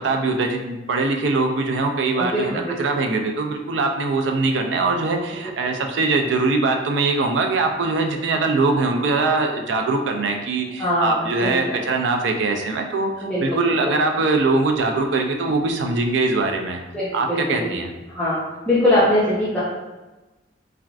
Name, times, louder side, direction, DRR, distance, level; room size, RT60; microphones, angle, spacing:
voice 1, 0.0-13.1 13.4-16.8 17.1-17.9, right 3 dB, 75° right, 4 dB, 0.4 m, -22 dB
voice 2, 2.1-2.8 5.4-5.5 10.8-11.7 13.2-13.8 16.9-17.7 18.1-18.4 18.7-19.6, left 1 dB, 5° left, -11 dB, 0.6 m, -22 dB
3.3 x 2.4 x 2.3 m, 1.1 s
head